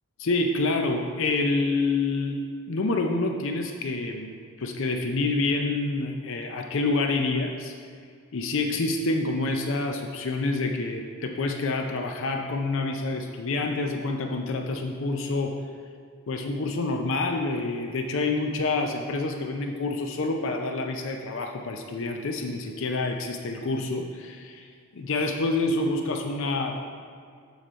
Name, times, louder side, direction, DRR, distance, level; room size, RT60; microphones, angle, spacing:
voice 1, 0.2-7.7 8.3-15.6 16.3-24.7 24.9-26.8, left 3 dB, 60° left, 3 dB, 0.5 m, -27 dB
7.5 x 4.9 x 4.4 m, 2.2 s
head